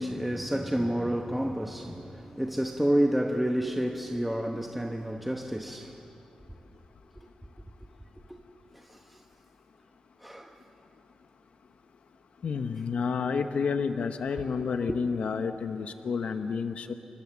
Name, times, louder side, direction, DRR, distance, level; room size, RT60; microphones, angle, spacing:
voice 1, 0.0-6.0 8.7-9.2 10.2-10.6, equal, 5° right, 1.0 m, -29 dB
voice 2, 12.4-16.9, left 5 dB, 70° left, 0.9 m, -30 dB
29.0 x 24.5 x 7.3 m
wide cardioid pair, 145°, 2 cm